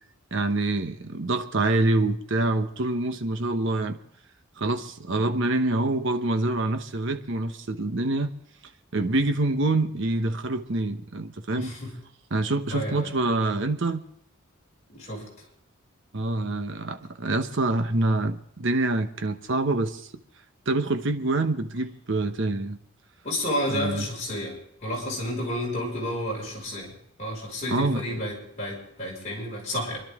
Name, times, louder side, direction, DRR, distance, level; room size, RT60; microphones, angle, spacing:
voice 1, 0.3-4.0 4.6-8.3 8.9-11.7 12.3-14.0 16.1-20.0 20.7-22.8 23.7-24.1 27.7-28.0, right 2 dB, 60° right, 8 dB, 1.0 m, -26 dB
voice 2, 11.5-11.9 12.7-13.1 14.9-15.2 23.2-24.5 24.8-26.9 27.2-30.0, left 1 dB, 35° left, -3 dB, 5.9 m, -31 dB
29.5 x 11.5 x 3.7 m, 0.70 s
head